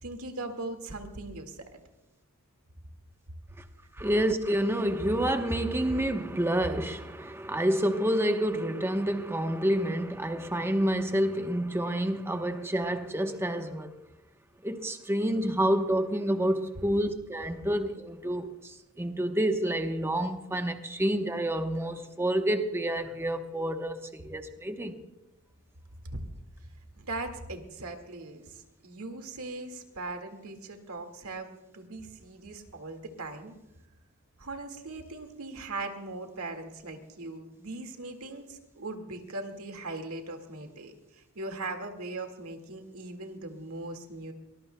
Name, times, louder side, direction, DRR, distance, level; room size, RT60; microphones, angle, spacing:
voice 1, 0.0-1.8 26.9-33.6 34.4-44.3, right 2 dB, 75° right, 2.0 m, -40 dB
voice 2, 4.0-13.9 14.6-25.0, right 1 dB, 10° right, 1.0 m, -28 dB
22.5 x 20.0 x 2.3 m
head